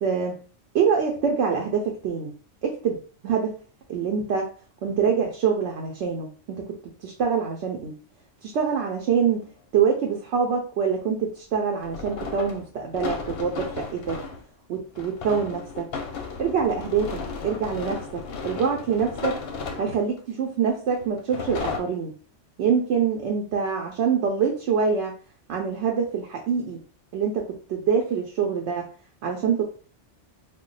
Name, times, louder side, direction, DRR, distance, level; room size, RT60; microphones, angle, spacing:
voice 1, 0.0-0.4 0.7-2.3 2.6-3.0 3.2-3.6 3.9-4.5 4.8-8.0 8.4-14.2 14.7-15.9 16.4-19.4 19.8-22.1 22.6-25.1 25.5-26.8 27.1-28.9 29.2-29.6, right 6 dB, 70° right, 1 dB, 0.8 m, -25 dB
sound 1, 9.1-9.2 11.8-14.4 15.0-20.2 21.0-21.8, left 5 dB, 65° left, 0.7 m, -34 dB
2.3 x 2.2 x 3.8 m, 0.39 s
omnidirectional pair, 1.2 m